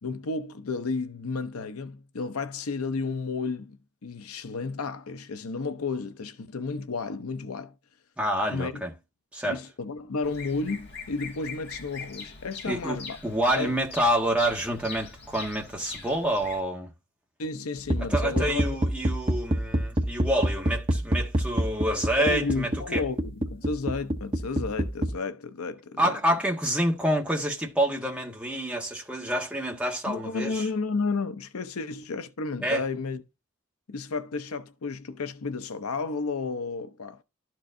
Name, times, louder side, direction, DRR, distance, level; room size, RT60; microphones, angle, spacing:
voice 1, 0.0-7.7 8.5-8.8 9.4-13.2 13.5-13.8 17.4-18.8 22.2-26.2 30.1-33.2 33.9-37.2, left 4 dB, 80° left, 0.7 m, -32 dB
voice 2, 8.2-8.9 9.3-9.6 12.6-13.0 13.2-16.9 18.0-23.0 26.0-30.7 32.6-32.8, right 1 dB, 5° right, 1.4 m, -27 dB
Bird vocalization bird call bird song, 10.2-16.6, left 5 dB, 50° left, 1.6 m, -42 dB
sound 1, 17.8-25.1, equal, 25° right, 1.0 m, -26 dB
12.5 x 4.5 x 2.6 m
head